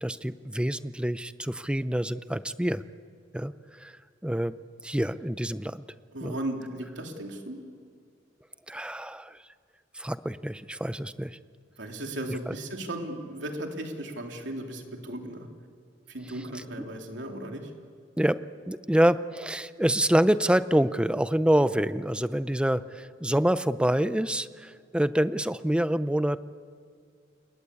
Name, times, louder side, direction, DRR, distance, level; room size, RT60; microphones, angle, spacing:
voice 1, 0.0-2.8 3.3-3.5 3.8-3.9 4.2-4.6 4.8-5.8 6.2-6.4 8.7-9.4 10.0-11.3 12.5-12.6 18.2-18.4 18.7-26.4, right 1 dB, 5° right, 13 dB, 0.6 m, -26 dB
voice 2, 6.1-7.6 11.8-15.5 16.1-17.7, right 1 dB, 70° right, 2 dB, 3.3 m, -36 dB
28.5 x 21.5 x 8.4 m, 2.1 s
head